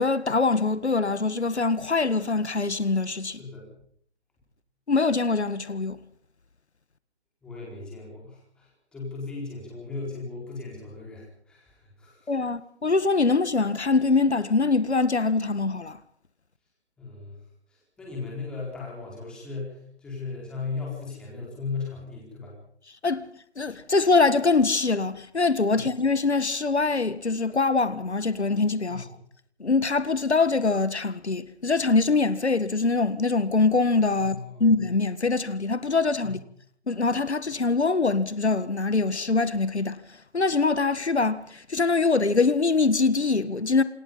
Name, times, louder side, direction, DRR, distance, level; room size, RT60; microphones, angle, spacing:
voice 1, 0.0-3.4 4.9-6.0 12.3-16.0 23.0-23.2 23.6-29.1 29.6-36.4 36.9-40.0 40.3-43.8, left 3 dB, 80° left, 1.8 m, -23 dB
voice 2, 3.2-3.7 7.4-12.3 17.0-17.4 17.7-22.5 25.7-25.9 28.9-29.1 34.2-34.6 36.2-36.4, left 4 dB, 5° left, 4.4 m, -37 dB
27.5 x 20.5 x 5.6 m
figure-of-eight pair, 170°, 33 cm